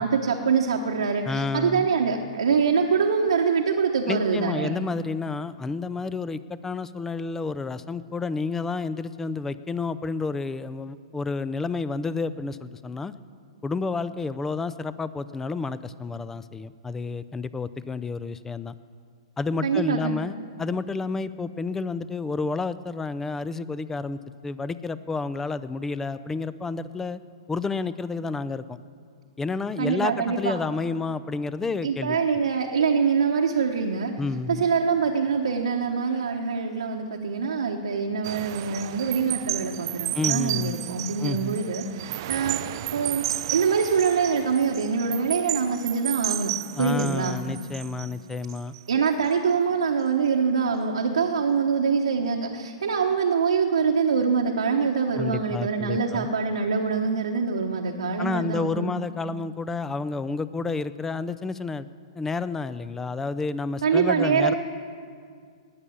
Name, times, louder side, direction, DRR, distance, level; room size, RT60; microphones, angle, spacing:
voice 1, 0.0-4.7 19.6-20.2 29.8-30.6 31.8-34.1 34.5-42.7 42.9-47.3 48.9-58.9 63.8-64.5, right 5 dB, 80° right, 0 dB, 1.0 m, -24 dB
voice 2, 1.2-1.9 4.1-13.1 13.6-18.7 19.4-27.2 27.5-28.8 29.4-32.2 34.2-34.6 40.1-40.8 41.2-41.6 46.8-48.8 55.1-56.3 58.2-61.9 62.2-64.5, left 4 dB, 10° left, 16 dB, 0.4 m, -30 dB
sound 1, 38.2-48.8 49.2-49.5, right 16 dB, 50° right, 0.4 m, -33 dB
19.5 x 7.3 x 7.0 m, 2.1 s
hypercardioid pair, 120°, 3 cm